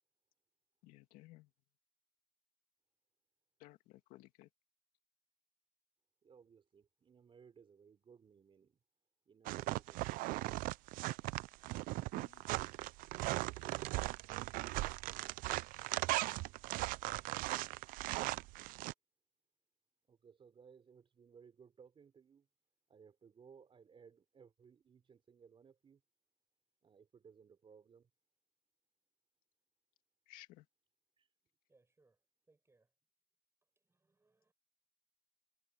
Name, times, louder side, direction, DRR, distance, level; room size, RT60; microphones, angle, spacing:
voice 1, 0.8-1.5 3.6-4.5 12.1-12.4 30.3-30.7, left 17 dB, 80° left, 2.1 m, -58 dB
voice 2, 6.2-8.8 9.3-10.5 20.1-22.5 22.9-26.0 26.8-28.1 31.2-31.3, right 6 dB, 40° right, 4.0 m, -62 dB
sound 1, 9.5-18.9, right 20 dB, 75° right, 0.5 m, -38 dB
voice 3, 31.7-32.2 32.5-32.9 33.8-34.5, right 3 dB, 20° right, 6.9 m, -73 dB
supercardioid pair, 90°, 14 cm